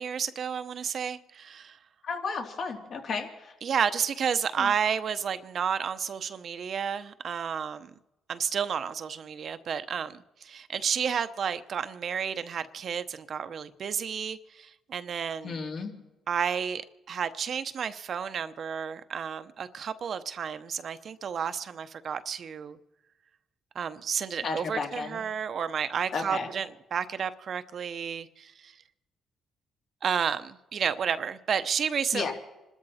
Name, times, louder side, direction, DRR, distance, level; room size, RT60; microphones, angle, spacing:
voice 1, 0.0-1.8 3.6-7.9 8.3-15.6 16.3-22.8 23.7-28.8 30.0-32.3, right 7 dB, 55° right, 0.9 m, -31 dB
voice 2, 2.0-3.5 4.6-4.7 15.4-15.9 24.4-25.2 26.1-26.5 32.1-32.3, left 4 dB, 60° left, 3.0 m, -33 dB
26.5 x 13.0 x 4.3 m
cardioid pair, 90°, 0 cm